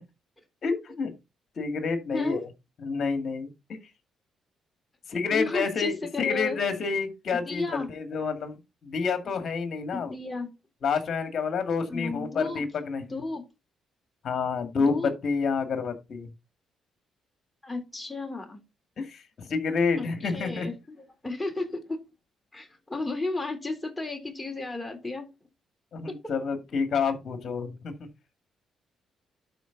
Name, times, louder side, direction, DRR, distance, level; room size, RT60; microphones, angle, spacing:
voice 1, 0.6-1.1 1.6-2.5 2.8-3.5 5.1-8.6 8.8-10.1 10.8-13.2 14.2-16.3 19.0-20.7 25.9-27.9, left 5 dB, 55° left, 2.2 m, -28 dB
voice 2, 2.1-2.4 5.3-6.6 7.3-7.9 9.9-10.5 11.9-12.6 13.1-13.4 14.8-15.1 17.6-18.6 20.0-22.0 22.5-25.2, left 2 dB, 15° left, 3.5 m, -33 dB
12.0 x 4.7 x 4.0 m
cardioid pair, 80°, 0 cm